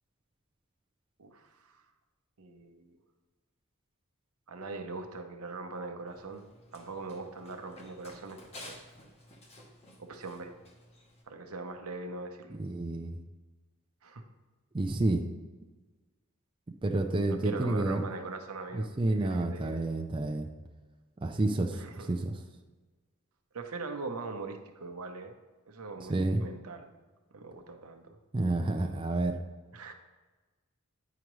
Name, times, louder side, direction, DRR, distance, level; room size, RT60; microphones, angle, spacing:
voice 1, 1.2-1.8 2.4-3.0 4.5-6.4 6.7-8.8 10.0-10.5 11.3-12.6 14.0-14.2 17.3-19.8 21.7-22.1 23.5-25.3 25.7-26.9 27.3-28.0 29.7-29.9, right 3 dB, 75° right, 5 dB, 0.8 m, -41 dB
Run, 6.1-11.2, left 1 dB, 30° left, 1.0 m, -52 dB
voice 2, 12.5-13.2 14.7-15.2 16.8-18.0 18.7-20.5 21.2-22.3 26.1-26.4 28.3-29.3, right 2 dB, 25° right, 3 dB, 0.4 m, -29 dB
9.3 x 4.9 x 3.1 m, 1.3 s
head